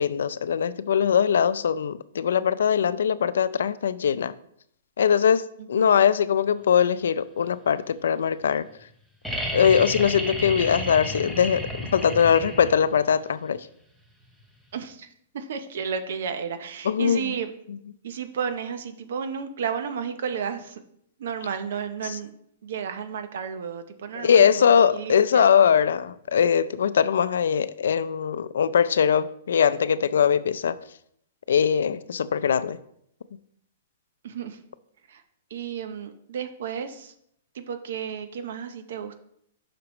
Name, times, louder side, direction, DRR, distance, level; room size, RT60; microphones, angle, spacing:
voice 1, 0.0-4.3 5.0-8.7 9.5-13.7 16.9-17.2 24.2-30.8 31.5-32.8, left 7 dB, 85° left, 0.4 m, -21 dB
voice 2, 5.6-6.0 14.7-15.1 15.3-17.5 18.0-20.8 21.2-22.3 22.6-25.5 34.2-34.6 35.1-35.2 35.5-37.1 37.5-39.2, right 7 dB, 60° right, 0.7 m, -32 dB
sound 1, 9.2-13.0 14.7-14.8, equal, ahead, 0.7 m, -32 dB
9.5 x 6.0 x 3.0 m
hypercardioid pair, 170°, 0 cm